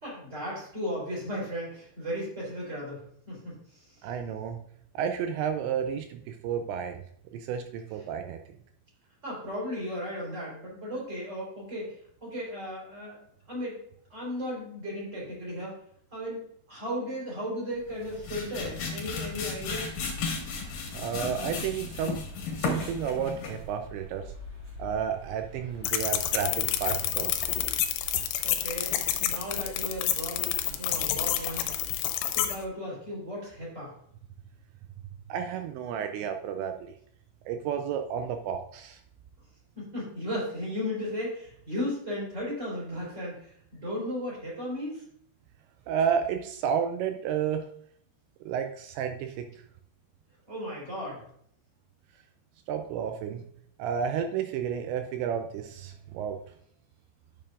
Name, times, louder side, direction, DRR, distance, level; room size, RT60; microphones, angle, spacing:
voice 1, 0.0-3.5 9.2-11.9 12.2-13.2 13.5-13.8 14.1-15.7 16.1-16.4 16.7-19.9 28.4-31.6 32.3-33.9 39.7-45.0 50.5-51.2, equal, 15° right, -4 dB, 3.2 m, -35 dB
voice 2, 4.0-4.6 5.0-7.0 7.3-8.4 20.9-22.3 22.6-24.3 24.8-27.5 28.1-28.3 35.3-36.9 37.5-39.0 45.9-47.7 48.5-49.5 52.7-53.4 53.8-56.4, right 8 dB, 85° right, 6 dB, 2.6 m, -31 dB
sound 1, 17.9-23.7, left 5 dB, 60° left, 2.3 m, -34 dB
sound 2, 19.6-32.0, right 2 dB, 45° right, 1.2 m, -46 dB
sound 3, 25.8-32.6, left 12 dB, 85° left, 3.2 m, -29 dB
10.5 x 6.7 x 2.5 m, 0.65 s
omnidirectional pair, 5.7 m